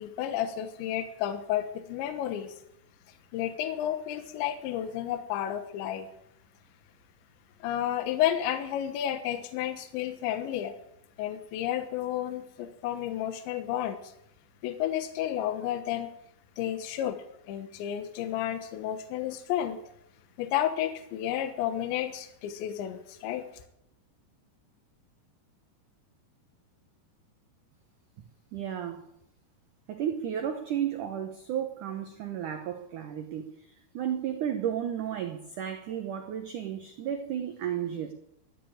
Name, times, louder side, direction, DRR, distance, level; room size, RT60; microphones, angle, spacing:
voice 1, 0.0-2.5 3.3-6.1 7.6-10.7 11.2-14.1 14.6-16.1 16.6-17.2 17.5-19.8 20.4-23.5, left 11 dB, 80° left, 9 dB, 3.4 m, -31 dB
voice 2, 28.5-29.0 29.9-38.1, right 9 dB, 80° right, 6 dB, 1.8 m, -33 dB
13.0 x 12.0 x 8.9 m, 0.79 s
omnidirectional pair, 5.3 m